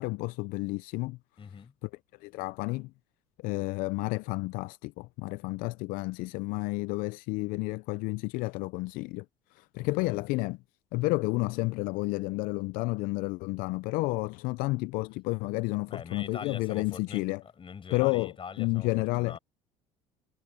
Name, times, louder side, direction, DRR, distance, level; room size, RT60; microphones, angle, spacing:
voice 1, 0.0-1.2 1.8-1.9 2.2-2.9 3.4-9.3 9.5-10.6 10.9-17.4 17.9-19.4, left 23 dB, 70° left, 0.5 m, -31 dB
voice 2, 1.4-1.7 9.8-10.2 15.9-19.4, left 6 dB, 35° left, 7.4 m, -44 dB
hypercardioid pair, 75°, 15 cm